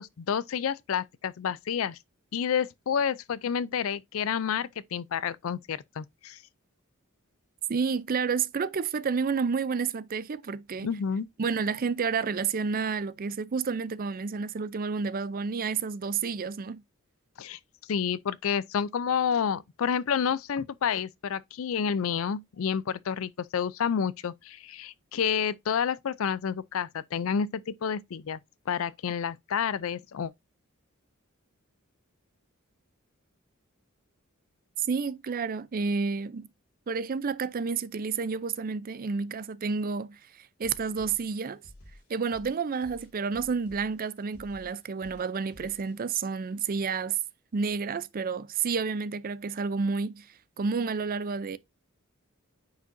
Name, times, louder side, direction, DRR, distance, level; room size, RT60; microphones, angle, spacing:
voice 1, 0.0-2.0 2.3-6.4 10.8-11.3 17.4-17.6 17.9-28.4 28.7-30.3, left 7 dB, 70° left, 0.4 m, -29 dB
voice 2, 7.7-10.9 11.4-16.8 34.8-36.5 36.9-40.2 40.6-41.6 42.1-47.2 47.5-50.3 50.6-51.6, right 5 dB, 40° right, 0.5 m, -30 dB
sound 1, 40.6-45.9, left 1 dB, 85° left, 2.3 m, -52 dB
9.1 x 5.1 x 2.6 m
head